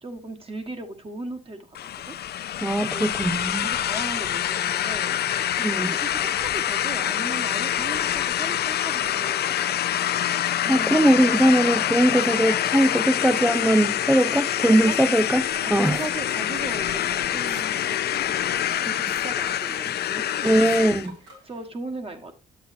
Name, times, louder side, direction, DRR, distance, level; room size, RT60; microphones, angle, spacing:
voice 1, 0.0-1.8 2.0-2.2 2.8-3.1 3.6-5.2 5.7-10.0 10.6-11.2 11.6-11.9 14.3-15.0 15.6-17.8 18.0-21.1 21.4-22.3, right 2 dB, 30° right, 1.4 m, -37 dB
sound 1, 1.7-21.1, left 11 dB, 55° left, 0.5 m, -26 dB
voice 2, 2.6-3.7 5.6-5.9 10.7-16.0 20.4-21.1, right 1 dB, 5° right, 0.3 m, -20 dB
sound 2, 14.6-21.7, right 2 dB, 70° right, 3.0 m, -46 dB
8.7 x 7.2 x 2.6 m
cardioid pair, 90°, 20 cm